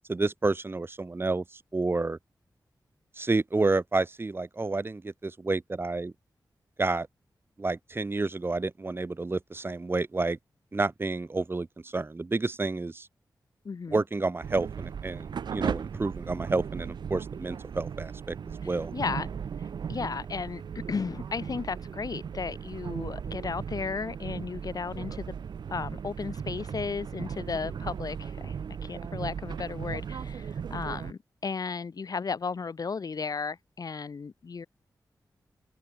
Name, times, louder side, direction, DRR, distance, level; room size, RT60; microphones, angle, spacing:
voice 1, 0.1-2.2 3.2-6.1 6.8-7.1 7.6-10.4 10.7-13.1 13.9-18.4 18.6-18.9, right 3 dB, 30° right, 2.1 m, -30 dB
voice 2, 13.6-14.0 18.6-19.3 19.9-20.6 20.9-25.3 25.7-28.6 28.8-34.7, left 5 dB, 60° left, 5.2 m, -34 dB
sound 1, 14.4-31.1, right 7 dB, 85° right, 3.5 m, -37 dB
wide cardioid pair, 85°, 7 cm